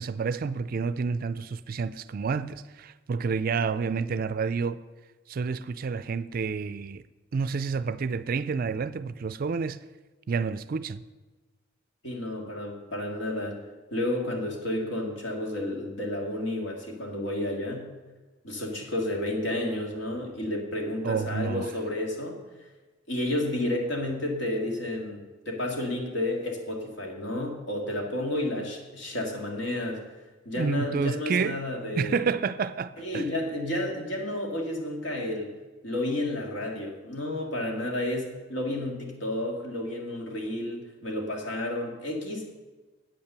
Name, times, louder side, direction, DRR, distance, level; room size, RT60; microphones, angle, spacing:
voice 1, 0.0-4.8 5.3-7.0 7.3-9.8 10.3-11.0 21.0-21.7 30.6-31.6 32.0-33.3, right 5 dB, 50° right, 0.4 m, -29 dB
voice 2, 12.0-13.6 13.9-17.9 18.4-22.4 23.1-30.0 30.5-32.2 33.0-35.5 35.8-42.5, left 1 dB, 70° left, 2.1 m, -31 dB
8.8 x 8.8 x 6.7 m
head